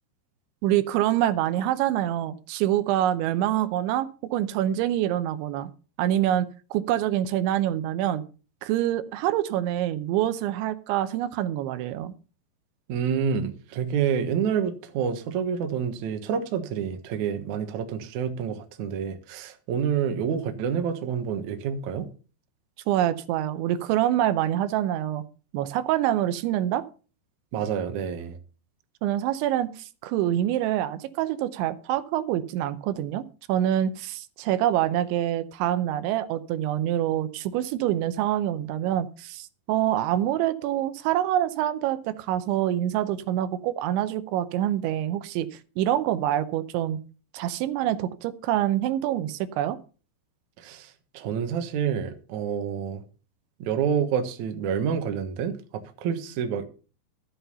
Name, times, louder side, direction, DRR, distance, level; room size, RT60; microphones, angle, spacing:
voice 1, 0.6-5.7 6.0-8.2 8.6-12.1 22.9-25.2 25.5-26.8 29.0-45.5 45.8-47.0 47.3-49.8, right 12 dB, 85° right, 12 dB, 3.2 m, -26 dB
voice 2, 12.9-22.1 27.5-28.4 50.6-53.0 53.6-55.5 56.0-56.6, right 7 dB, 65° right, 7 dB, 2.0 m, -28 dB
12.5 x 8.1 x 5.5 m, 0.37 s
omnidirectional pair, 5.2 m